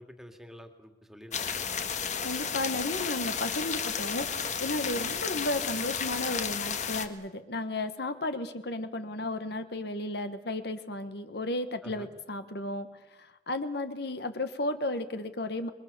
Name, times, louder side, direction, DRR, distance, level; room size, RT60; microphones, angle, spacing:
voice 1, 0.0-1.7 11.8-12.1, equal, ahead, 6 dB, 2.2 m, -48 dB
sound 1, 1.3-7.1, left 6 dB, 40° left, 1.6 m, -32 dB
voice 2, 2.2-12.9 13.2-15.7, left 2 dB, 60° left, 9 dB, 1.4 m, -34 dB
28.0 x 22.5 x 6.9 m, 1.0 s
head